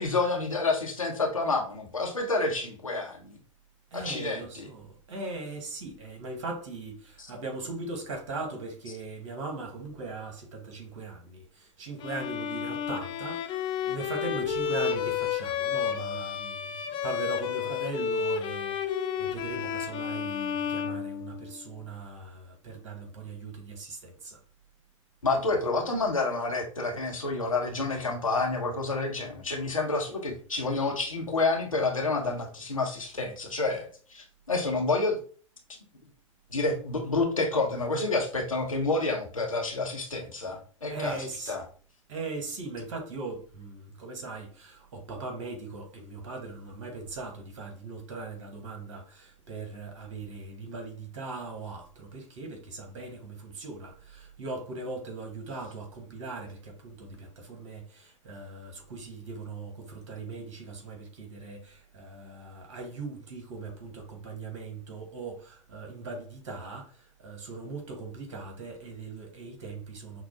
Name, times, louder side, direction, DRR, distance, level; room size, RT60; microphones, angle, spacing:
voice 1, 0.0-3.4 3.9-4.7 7.2-7.3 25.2-35.2 36.5-41.2 41.5-41.6, left 3 dB, 85° left, 0.9 m, -29 dB
voice 2, 3.9-24.4 40.9-41.6 42.1-70.2, right 3 dB, 65° right, 1.2 m, -39 dB
Bowed string instrument, 12.0-21.7, left 8 dB, 30° left, 0.4 m, -31 dB
5.7 x 2.0 x 2.7 m
figure-of-eight pair, 90°, 17 cm